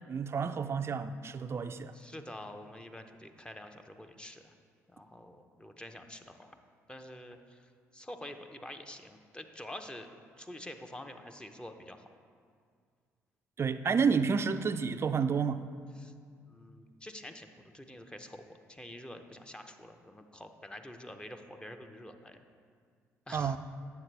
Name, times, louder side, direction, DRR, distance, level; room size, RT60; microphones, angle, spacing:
voice 1, 0.1-1.9 13.6-15.7 23.3-23.6, right 5 dB, 40° right, 11 dB, 0.4 m, -30 dB
voice 2, 1.9-4.5 4.9-6.6 6.9-10.1 10.4-12.1 16.0-16.1 16.5-18.4 18.7-22.4 23.3-23.6, left 1 dB, 15° left, 6 dB, 0.7 m, -47 dB
9.2 x 7.1 x 3.3 m, 2.1 s
hypercardioid pair, 50°, 7 cm